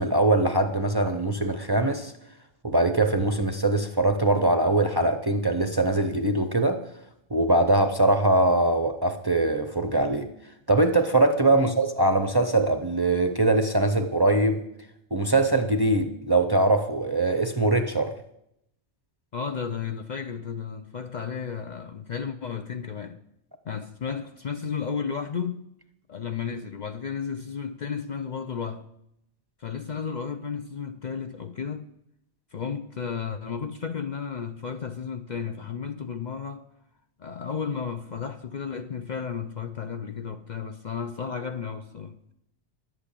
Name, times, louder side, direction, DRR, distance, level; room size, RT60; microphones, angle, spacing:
voice 1, 0.0-2.1 2.6-6.8 7.3-10.3 10.7-14.6 15.1-18.1, right 2 dB, 25° right, 0.6 m, -22 dB
voice 2, 19.3-23.2 23.6-25.6 26.1-28.9 29.6-31.9 32.5-36.7 37.2-42.3, left 6 dB, 45° left, 0.6 m, -33 dB
11.0 x 8.4 x 8.4 m
omnidirectional pair, 1.2 m